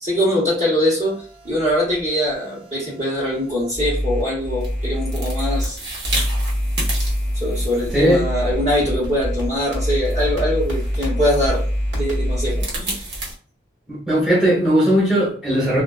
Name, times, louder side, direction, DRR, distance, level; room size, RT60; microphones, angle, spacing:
voice 1, 0.0-5.8 7.3-11.6 11.9-13.0, equal, 40° right, 1.0 m, -22 dB
sound 1, 1.0-5.7 6.0-12.7, equal, 85° right, 1.3 m, -25 dB
sound 2, 4.4-13.3, right 1 dB, 60° right, 0.9 m, -33 dB
voice 2, 7.9-8.3 13.9-15.8, equal, 5° right, 0.8 m, -18 dB
2.4 x 2.4 x 2.3 m
head